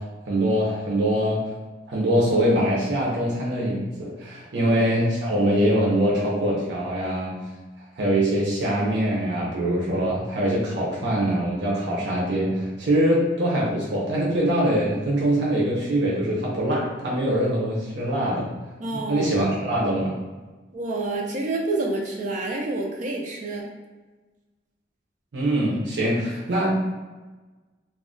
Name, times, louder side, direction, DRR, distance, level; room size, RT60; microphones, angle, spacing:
voice 1, 0.0-1.4 1.9-7.4 8.0-18.5 18.9-20.1 25.3-26.7, right 1 dB, 85° right, -5 dB, 0.7 m, -23 dB
voice 2, 18.8-19.3 20.7-23.6, right 2 dB, 45° right, 0 dB, 0.5 m, -28 dB
2.4 x 2.0 x 3.6 m, 1.2 s
head